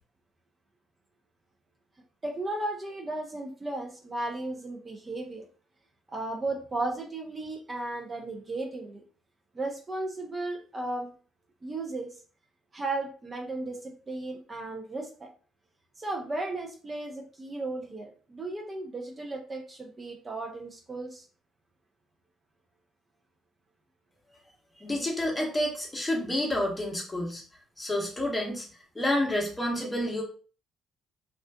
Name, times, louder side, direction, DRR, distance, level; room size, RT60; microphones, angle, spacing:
voice 1, 2.2-5.5 6.1-9.0 9.5-11.1 11.6-12.1 12.7-15.3 16.0-21.2, right 2 dB, 30° right, 1 dB, 0.6 m, -35 dB
voice 2, 24.8-27.4 27.8-28.7 28.9-30.2, left 1 dB, 20° left, -1 dB, 0.9 m, -29 dB
2.4 x 2.4 x 2.2 m, 0.40 s
hypercardioid pair, 55°, 0 cm